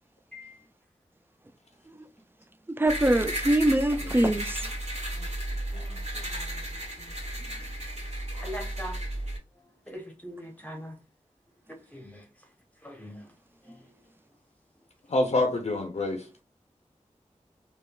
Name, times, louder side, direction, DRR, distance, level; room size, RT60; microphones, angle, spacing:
voice 1, 2.8-4.6, right 1 dB, 15° right, 0.4 m, -23 dB
sound 1, 2.8-9.4, right 1 dB, 60° right, 1.4 m, -34 dB
voice 2, 5.7-6.6 15.1-16.3, left 2 dB, 55° left, 0.5 m, -29 dB
voice 3, 8.4-8.9 9.9-11.0 11.9-12.2 12.8-13.3, equal, 10° left, 0.9 m, -40 dB
3.3 x 2.2 x 2.2 m
cardioid pair, 40°, 13 cm